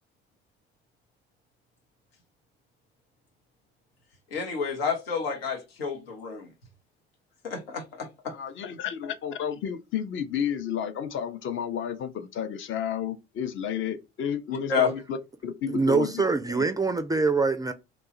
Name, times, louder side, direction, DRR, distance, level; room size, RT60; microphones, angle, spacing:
voice 1, 4.3-6.5 7.4-8.3 14.7-14.9, left 6 dB, 80° left, 0.8 m, -29 dB
voice 2, 8.3-15.2 15.4-16.2 16.5-16.6, left 8 dB, 40° left, 0.6 m, -31 dB
voice 3, 15.7-17.7, right 4 dB, 15° right, 0.4 m, -24 dB
3.0 x 2.3 x 3.9 m
figure-of-eight pair, 50°, 30 cm